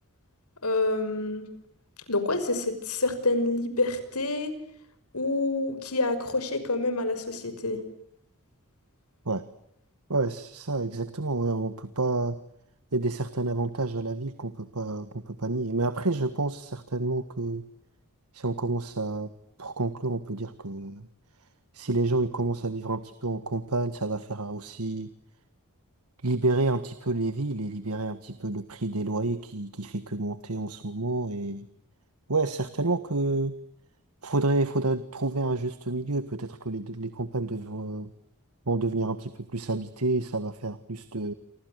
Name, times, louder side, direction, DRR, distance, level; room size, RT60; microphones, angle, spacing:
voice 1, 0.6-1.5 2.1-4.5 5.1-7.8, left 2 dB, 85° left, 11 dB, 5.9 m, -27 dB
voice 2, 10.1-12.4 12.9-17.6 18.3-19.3 19.6-21.1 21.7-25.1 26.2-31.7 32.3-33.6 34.2-38.1 38.7-41.3, right 2 dB, 85° right, 13 dB, 1.6 m, -29 dB
29.0 x 25.5 x 8.1 m, 0.75 s
head